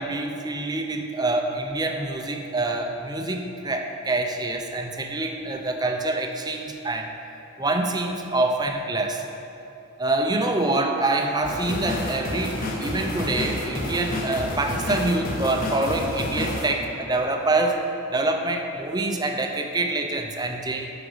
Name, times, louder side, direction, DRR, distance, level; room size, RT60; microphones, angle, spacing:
voice 1, 0.0-7.1 7.6-9.2 10.0-17.8 18.1-20.9, right 2 dB, 20° right, 4 dB, 0.6 m, -26 dB
sound 1, 11.4-16.7, left 1 dB, 40° left, 1.1 m, -29 dB
13.0 x 4.9 x 5.0 m, 2.9 s
head